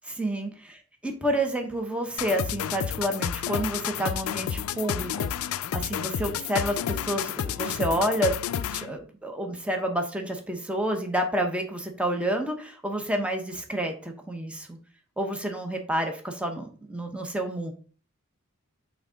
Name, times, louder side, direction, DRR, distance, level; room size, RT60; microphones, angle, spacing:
voice 1, 0.0-8.4 8.6-14.8 15.2-17.7, right 1 dB, 5° right, 3 dB, 0.9 m, -29 dB
sound 1, 2.2-9.0, left 9 dB, 75° left, 0.4 m, -30 dB
6.2 x 3.6 x 5.0 m, 0.40 s
head